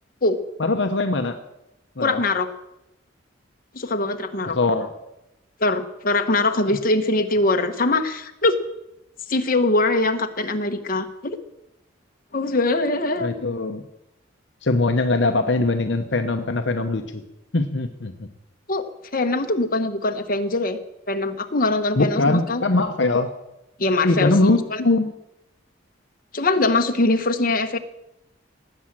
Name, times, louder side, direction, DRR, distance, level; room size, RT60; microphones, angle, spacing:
voice 1, 0.6-1.4 2.0-2.2 4.5-4.9 6.7-6.8 13.2-13.8 14.6-17.2 17.5-18.3 22.0-23.3 24.0-25.1, left 2 dB, 65° left, 6 dB, 0.9 m, -21 dB
voice 2, 2.0-2.5 3.7-4.6 5.6-8.6 9.3-11.4 12.3-13.3 18.7-18.8 19.1-20.8 21.1-22.6 23.8-24.3 24.7-24.8 26.3-27.8, left 2 dB, 45° left, 6 dB, 1.2 m, -22 dB
18.0 x 8.6 x 7.5 m, 0.89 s
head